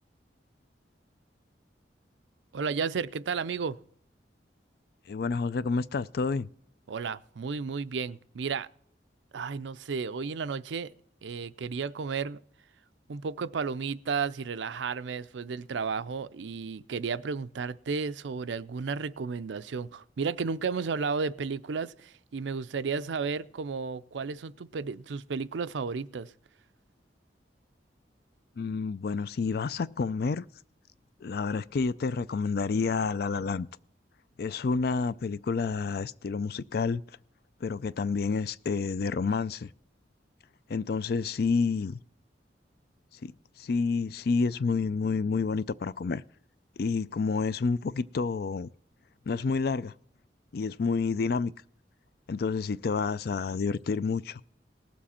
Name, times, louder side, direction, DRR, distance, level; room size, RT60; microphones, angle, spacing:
voice 1, 2.5-3.8 6.9-8.7 9.3-10.9 11.2-12.4 13.1-26.3, right 5 dB, 90° right, 0.5 m, -33 dB
voice 2, 5.1-6.5 28.6-30.4 31.2-33.7 34.4-37.0 37.6-39.7 40.7-42.0 43.2-43.3 43.6-46.2 46.8-48.7 49.3-49.9 50.5-51.5 52.3-54.4, left 4 dB, 55° left, 0.4 m, -29 dB
19.0 x 7.4 x 4.3 m
head